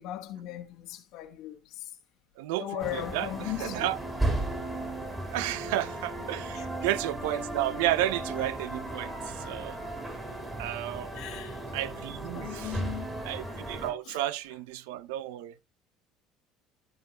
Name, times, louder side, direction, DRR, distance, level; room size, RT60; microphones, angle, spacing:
voice 1, 0.0-1.9 2.6-3.9 6.5-6.6 9.8-9.9 11.1-11.6 12.3-13.1 14.0-14.2, left 13 dB, 70° left, 1.5 m, -38 dB
voice 2, 2.4-4.0 5.3-9.8 10.6-11.2 11.7-12.8 13.2-15.6, right 14 dB, 85° right, 0.6 m, -32 dB
sound 1, 2.8-13.9, right 1 dB, 15° right, 3.6 m, -35 dB
13.5 x 4.8 x 2.9 m
supercardioid pair, 90°, 0 cm